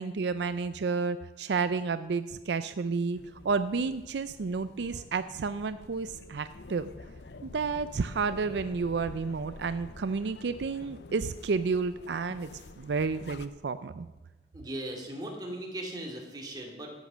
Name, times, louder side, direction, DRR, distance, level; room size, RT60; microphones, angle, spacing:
voice 1, 0.0-3.2 3.4-6.9 7.4-12.5 12.8-14.1, right 4 dB, 80° right, 12 dB, 0.4 m, -31 dB
sound 1, 3.1-13.5, left 3 dB, 75° left, 0.6 m, -48 dB
voice 2, 14.5-16.9, right 1 dB, 25° right, 0 dB, 2.4 m, -38 dB
13.0 x 8.3 x 6.2 m, 1.1 s
head